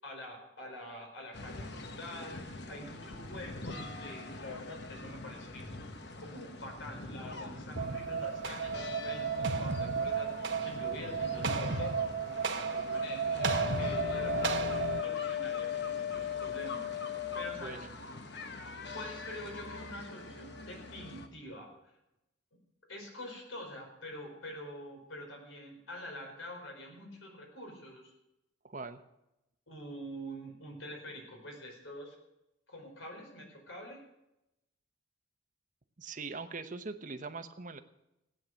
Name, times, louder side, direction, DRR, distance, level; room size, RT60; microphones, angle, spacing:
voice 1, 0.0-5.7 6.2-14.6 15.0-16.9 17.3-17.9 18.9-21.7 22.9-28.1 29.7-32.1 32.7-34.0, left 1 dB, 85° left, 2 dB, 4.6 m, -46 dB
sound 1, 1.3-21.3, left 2 dB, 60° left, 1.1 m, -45 dB
sound 2, 7.7-15.0, right 5 dB, 65° right, 1.0 m, -33 dB
Wind instrument woodwind instrument, 13.4-17.6, left 12 dB, 30° left, 2.3 m, -36 dB
voice 2, 28.6-29.0 36.0-37.8, right 3 dB, 40° right, 9 dB, 0.9 m, -41 dB
16.0 x 9.3 x 6.3 m, 0.89 s
head